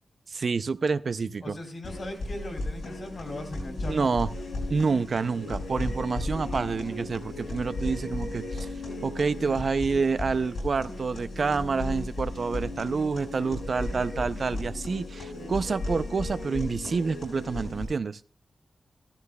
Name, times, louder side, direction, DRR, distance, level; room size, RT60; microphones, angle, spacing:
voice 1, 0.3-1.5 3.9-4.3 4.7-8.7 9.0-18.2, right 4 dB, 60° right, 14 dB, 0.4 m, -28 dB
voice 2, 1.4-4.6, left 1 dB, 50° left, 4 dB, 2.7 m, -39 dB
sound 1, 1.8-17.8, left 2 dB, 80° left, 6.4 m, -35 dB
15.0 x 13.0 x 2.3 m, 0.37 s
wide cardioid pair, 110°, 0 cm